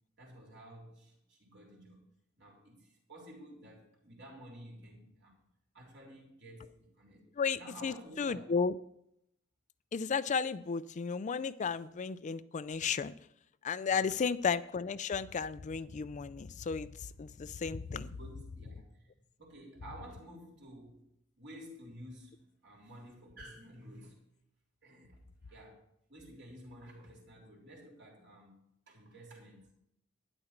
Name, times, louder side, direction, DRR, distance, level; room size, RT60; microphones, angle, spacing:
voice 1, 0.2-2.0 2.4-5.4 5.7-7.3 7.6-8.5 13.9-14.2 18.0-19.1 19.4-21.1 21.4-24.2 24.8-25.2 25.5-25.8 26.1-28.6 28.9-29.7, right 1 dB, 60° right, 3.7 m, -52 dB
voice 2, 7.4-8.7 9.9-13.1 13.6-16.9 17.2-18.1, left 5 dB, 35° left, 0.4 m, -33 dB
12.0 x 10.0 x 4.5 m
head